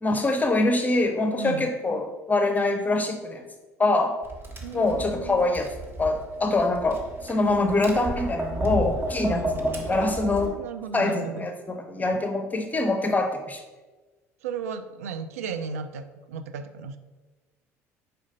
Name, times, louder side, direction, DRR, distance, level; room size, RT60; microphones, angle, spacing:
voice 1, 0.0-3.5 3.8-4.2 4.7-5.7 6.0-10.6 10.9-13.6, left 2 dB, 20° left, 5 dB, 0.7 m, -24 dB
voice 2, 1.4-1.7 4.6-5.5 9.2-9.5 10.0-11.5 14.4-17.0, right 6 dB, 80° right, 10 dB, 0.4 m, -35 dB
Tap, 4.2-10.5, right 1 dB, 30° right, 1.3 m, -33 dB
5.0 x 4.4 x 5.3 m, 1.3 s
hypercardioid pair, 60°, 8 cm